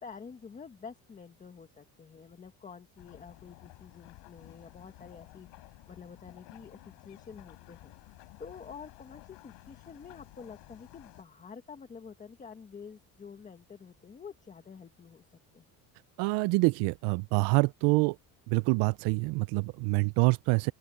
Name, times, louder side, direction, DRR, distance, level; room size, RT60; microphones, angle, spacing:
voice 1, 0.0-7.9 8.4-15.2 15.5-15.6, left 6 dB, 20° left, 1.4 m, -48 dB
sound 1, 3.0-11.2, left 23 dB, 90° left, 6.5 m, -53 dB
voice 2, 16.2-18.2 18.5-20.7, right 25 dB, 80° right, 0.5 m, -26 dB
open air
cardioid pair, 175°, 40 cm